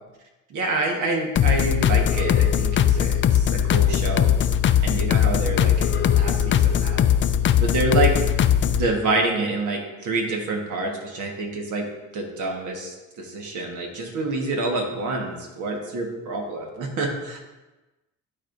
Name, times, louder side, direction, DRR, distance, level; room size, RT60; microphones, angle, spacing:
voice 1, 0.5-4.3 4.8-7.0 7.6-8.1 8.6-11.8 12.1-17.4, right 2 dB, 80° right, 1 dB, 1.5 m, -27 dB
sound 1, 1.4-8.9, left 9 dB, 40° left, 0.4 m, -20 dB
12.0 x 4.3 x 2.6 m, 1.1 s
cardioid pair, 90°, 30 cm